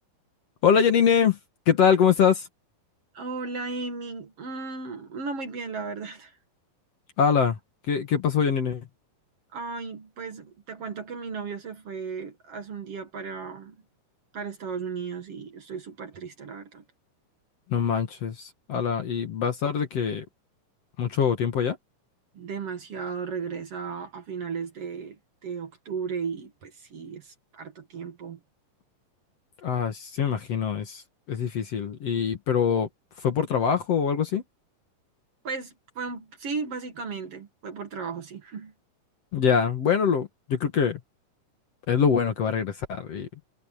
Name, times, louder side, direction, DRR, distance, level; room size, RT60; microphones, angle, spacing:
voice 1, 0.6-1.4 1.7-2.5 7.2-7.6 7.9-8.9 17.7-20.3 21.0-21.8 29.6-31.0 31.3-32.9 33.2-34.4 39.3-41.0 41.9-43.3, left 7 dB, 55° left, 2.4 m, -23 dB
voice 2, 3.1-6.4 9.5-13.8 14.3-16.8 22.3-28.4 35.4-38.7, right 5 dB, 50° right, 2.5 m, -35 dB
omnidirectional pair, 3.9 m